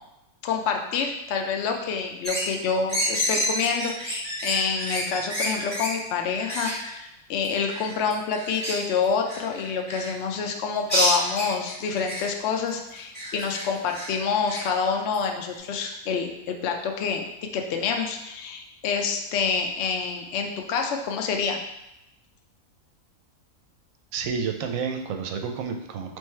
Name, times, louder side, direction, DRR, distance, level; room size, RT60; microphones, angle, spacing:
voice 1, 0.4-17.3 17.5-21.6, left 5 dB, 65° left, 3 dB, 0.7 m, -27 dB
sound 1, 2.2-2.5 2.9-5.9 6.3-6.8 7.4-10.1 10.9-12.2 13.0-14.1 14.5-14.6 15.1-15.2 15.4-15.5, equal, 10° left, 1.1 m, -28 dB
voice 2, 24.1-26.2, right 6 dB, 70° right, 4 dB, 0.9 m, -30 dB
3.5 x 3.2 x 4.3 m, 0.88 s
omnidirectional pair, 1.6 m